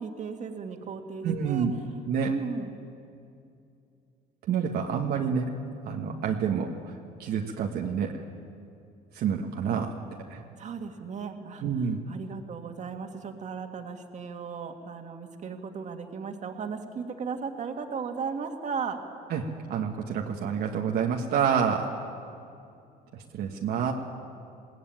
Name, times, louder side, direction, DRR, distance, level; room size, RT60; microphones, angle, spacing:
voice 1, 0.0-1.7 2.2-2.7 10.6-11.6 12.1-19.0, right 5 dB, 45° right, 4 dB, 2.1 m, -36 dB
voice 2, 1.2-1.7 2.1-2.3 4.5-5.5 5.8-6.9 7.2-8.2 9.1-10.0 10.3-10.4 11.6-12.0 19.3-22.1 23.1-23.9, right 7 dB, 70° right, 1 dB, 1.6 m, -28 dB
21.5 x 18.0 x 9.1 m, 2.5 s
cardioid pair, 110°, 17 cm